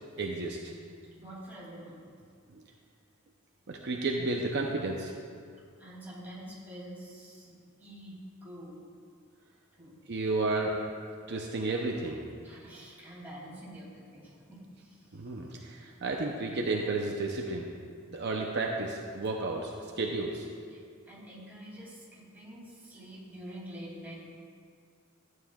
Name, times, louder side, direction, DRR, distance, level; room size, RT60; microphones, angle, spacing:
voice 1, 0.2-0.7 3.7-5.1 10.1-10.8 11.3-12.2 15.1-17.7 18.1-20.5, right 2 dB, 55° right, 0 dB, 0.7 m, -32 dB
voice 2, 1.2-2.1 5.8-8.8 9.8-10.0 12.4-15.3 20.7-24.3, equal, 10° right, -7 dB, 2.7 m, -47 dB
14.0 x 9.3 x 2.4 m, 2.2 s
head